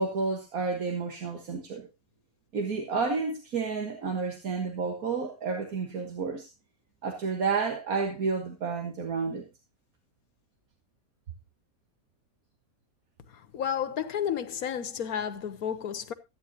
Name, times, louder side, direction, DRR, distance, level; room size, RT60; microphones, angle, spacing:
voice 1, 0.0-1.9 2.5-6.5 7.0-9.5, right 4 dB, 80° right, 1.9 m, -30 dB
voice 2, 13.5-16.1, left 8 dB, 90° left, 1.5 m, -31 dB
14.0 x 9.6 x 2.8 m
omnidirectional pair, 1.5 m